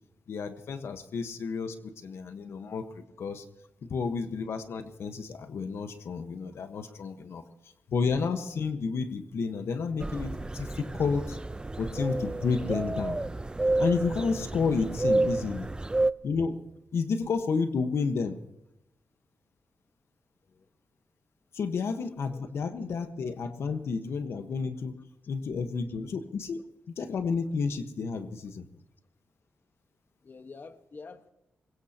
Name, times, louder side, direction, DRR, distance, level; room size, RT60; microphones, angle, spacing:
voice 1, 0.3-3.4 3.8-7.4 7.9-11.4 11.8-13.2 13.8-15.7 16.2-16.6 16.9-18.4 21.5-24.9 25.3-26.6 27.0-28.6, left 5 dB, 75° left, 8 dB, 1.3 m, -31 dB
sound 1, 10.0-16.1, right 2 dB, 20° right, 0.6 m, -30 dB
voice 2, 21.7-22.4 30.2-31.3, left 4 dB, 50° left, 8 dB, 1.3 m, -48 dB
23.0 x 21.0 x 2.9 m, 0.84 s
cardioid pair, 70°, 4 cm